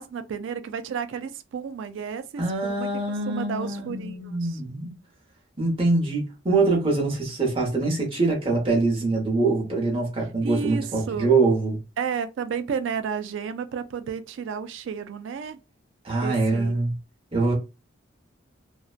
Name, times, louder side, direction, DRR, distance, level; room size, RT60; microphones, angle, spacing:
voice 1, 0.0-2.9 3.3-4.6 10.4-11.3 12.0-15.6 16.2-16.9, right 6 dB, 70° right, 0.3 m, -32 dB
voice 2, 2.4-4.9 5.6-11.8 16.0-16.9 17.3-17.5, right 3 dB, 25° right, 0.9 m, -24 dB
2.5 x 2.1 x 2.4 m
head